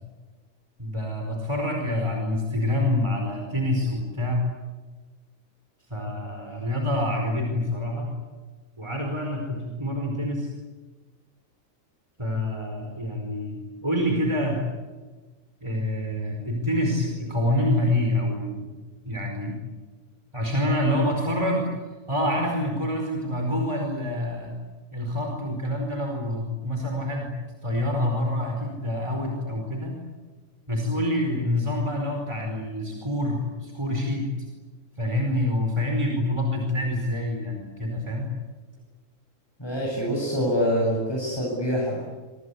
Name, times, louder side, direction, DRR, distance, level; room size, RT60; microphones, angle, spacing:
voice 1, 0.8-4.5 5.9-8.1 8.8-10.5 12.2-14.6 15.6-18.7 19.0-19.6 20.3-21.7 22.1-24.5 24.9-27.3 27.6-30.0 30.7-34.3 35.0-38.3, left 1 dB, 20° right, 2 dB, 5.0 m, -26 dB
voice 2, 39.6-42.0, equal, 20° left, -4 dB, 7.7 m, -25 dB
26.5 x 26.0 x 8.5 m, 1.2 s
omnidirectional pair, 1.4 m